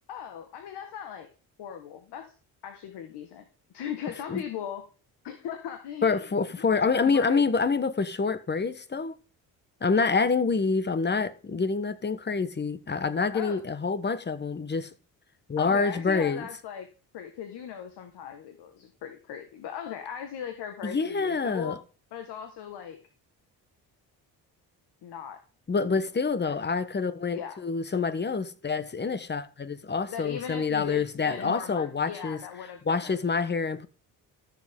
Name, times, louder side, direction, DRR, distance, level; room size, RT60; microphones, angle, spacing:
voice 1, 0.1-1.3 1.6-2.3 2.6-3.4 3.7-4.8 5.2-6.2 6.7-7.5 13.3-13.6 15.6-16.9 17.1-21.8 22.1-23.0 25.0-25.4 26.4-26.6 27.3-27.6 30.1-33.2, left 8 dB, 75° left, 1.6 m, -38 dB
voice 2, 6.0-9.2 9.8-14.9 15.5-16.5 20.8-21.7 25.7-32.4 32.9-33.9, left 4 dB, 25° left, 1.1 m, -27 dB
13.0 x 7.5 x 3.7 m
supercardioid pair, 70°, 41 cm